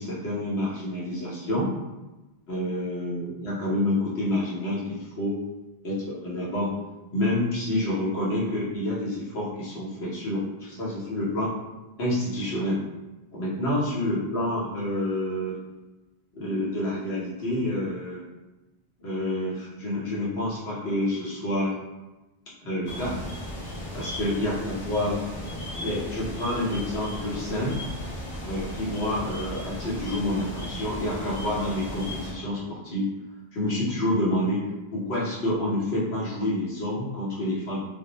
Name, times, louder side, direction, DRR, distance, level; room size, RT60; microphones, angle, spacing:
voice 1, 0.0-1.7 2.5-5.4 5.8-6.7 7.1-11.5 12.0-12.8 13.3-15.6 16.3-18.2 19.0-21.8 22.6-23.2 23.9-25.2 25.8-27.8 28.4-33.1 33.5-34.6 34.9-37.8, left 1 dB, 90° left, -7 dB, 1.1 m, -28 dB
sound 1, 22.9-32.3, equal, 55° left, 1.0 m, -36 dB
2.5 x 2.1 x 2.8 m, 1.1 s
omnidirectional pair, 1.0 m